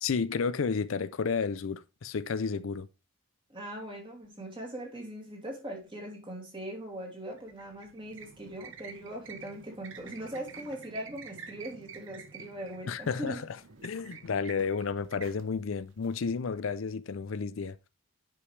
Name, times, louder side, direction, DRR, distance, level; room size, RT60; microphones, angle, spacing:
voice 1, 0.0-2.9 12.9-13.5 13.8-17.8, left 5 dB, 75° left, 0.5 m, -31 dB
voice 2, 3.5-13.4, right 1 dB, 25° right, 2.5 m, -40 dB
sound 1, 7.3-16.7, right 6 dB, 70° right, 0.9 m, -49 dB
9.8 x 5.3 x 3.2 m
head